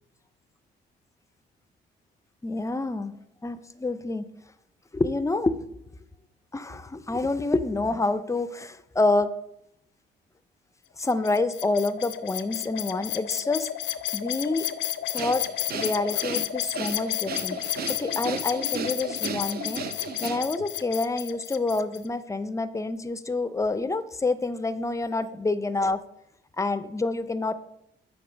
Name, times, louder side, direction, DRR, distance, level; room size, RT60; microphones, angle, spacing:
voice 1, 2.4-3.1 3.4-4.3 4.9-5.6 6.5-9.3 11.0-13.7 14.1-14.7 15.1-15.4 15.7-17.6 17.9-19.9 20.2-26.0 26.6-27.5, left 2 dB, 15° left, 12 dB, 0.4 m, -27 dB
sound 1, 11.0-22.0, left 11 dB, 70° left, 0.5 m, -32 dB
Breathing, 15.2-20.7, right 6 dB, 50° right, 0.6 m, -35 dB
8.9 x 3.4 x 5.1 m, 0.79 s
cardioid pair, 90°, 20 cm